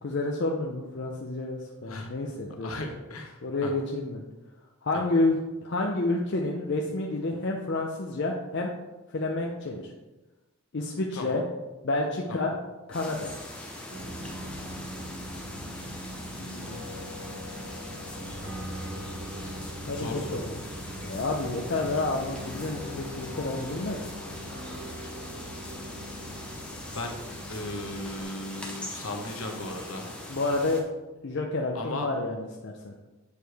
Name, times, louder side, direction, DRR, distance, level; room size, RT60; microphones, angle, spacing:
voice 1, 0.0-2.7 3.4-4.2 4.8-8.7 9.1-9.9 10.7-11.4 11.8-12.5 12.9-13.3 16.3-16.8 19.9-20.5 21.0-24.0 30.3-30.8 31.2-32.9, left 2 dB, 50° left, 0 dB, 0.6 m, -29 dB
voice 2, 1.8-2.2 2.6-3.7 4.9-5.2 11.1-11.4 12.3-12.5 19.9-20.5 26.9-27.2 27.5-30.1 31.7-32.1, left 2 dB, 70° left, 3 dB, 1.1 m, -36 dB
sound 1, 12.9-30.8, left 1 dB, 5° left, 0.7 m, -41 dB
sound 2, 13.9-28.2, equal, 50° right, 1.5 m, -41 dB
8.3 x 4.7 x 3.4 m, 1.1 s
head